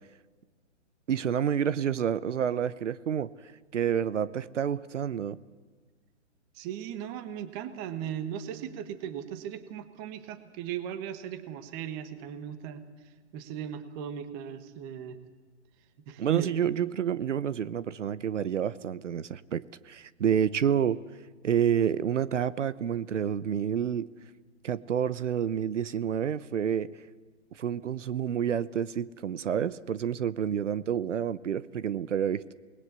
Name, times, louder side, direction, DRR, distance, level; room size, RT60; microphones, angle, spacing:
voice 1, 1.1-3.3 3.7-5.4 16.2-21.0 21.4-24.1 24.6-26.9 27.6-32.5, right 8 dB, 75° right, 17 dB, 1.0 m, -29 dB
voice 2, 6.5-12.8 13.3-15.2 16.1-16.5, right 9 dB, 20° right, 11 dB, 1.2 m, -37 dB
28.0 x 20.0 x 8.1 m, 1.4 s
hypercardioid pair, 160°, 37 cm